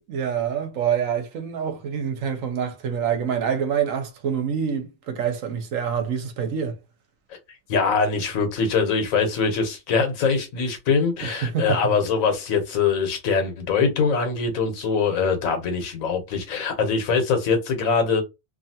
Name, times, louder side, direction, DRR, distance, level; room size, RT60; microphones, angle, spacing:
voice 1, 0.1-6.8 11.2-11.8, right 7 dB, 80° right, 1.1 m, -26 dB
voice 2, 7.7-18.2, left 5 dB, 90° left, 1.3 m, -23 dB
2.7 x 2.4 x 2.7 m
omnidirectional pair, 1.4 m